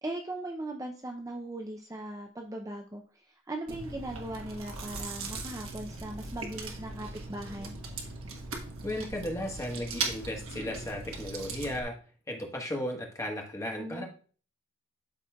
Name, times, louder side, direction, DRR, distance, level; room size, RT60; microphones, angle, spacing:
voice 1, 0.0-7.7 13.8-14.0, right 1 dB, 15° right, 2 dB, 0.5 m, -39 dB
Chewing mastication, 3.7-11.8, right 4 dB, 70° right, 1.4 m, -39 dB
voice 2, 8.8-11.9 12.3-14.1, left 1 dB, 15° left, 0 dB, 1.3 m, -35 dB
12.5 x 4.3 x 2.3 m, 0.40 s
head